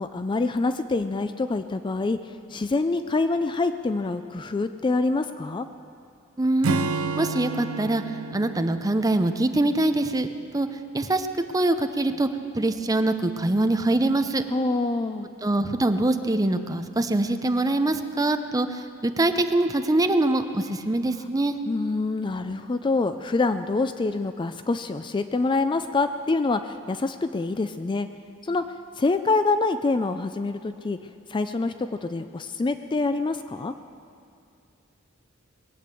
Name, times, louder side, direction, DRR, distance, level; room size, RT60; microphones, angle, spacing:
voice 1, 0.0-5.7 14.5-15.3 21.7-28.1 28.4-28.6 29.0-31.0 31.3-33.7, left 3 dB, 25° left, 10 dB, 0.4 m, -26 dB
voice 2, 6.4-6.9 7.2-8.0 8.3-10.3 10.5-10.7 10.9-11.3 11.5-12.3 12.5-14.4 15.4-21.6, right 2 dB, 15° right, 8 dB, 0.6 m, -23 dB
Acoustic guitar / Strum, 6.6-10.1, right 4 dB, 80° right, 0.6 m, -31 dB
21.0 x 8.6 x 7.7 m, 2.4 s
head